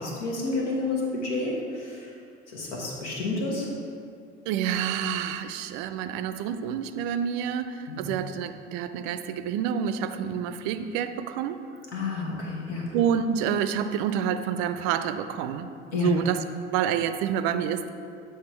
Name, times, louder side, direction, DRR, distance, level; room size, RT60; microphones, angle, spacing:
voice 1, 0.0-2.0 2.5-3.7 7.9-8.0 11.9-12.8 15.9-16.1, left 3 dB, 75° left, -3 dB, 1.4 m, -30 dB
voice 2, 4.5-11.6 12.9-16.4 16.7-17.9, right 8 dB, 55° right, 10 dB, 0.5 m, -28 dB
7.7 x 3.3 x 4.4 m, 2.4 s
figure-of-eight pair, 65°, 35 cm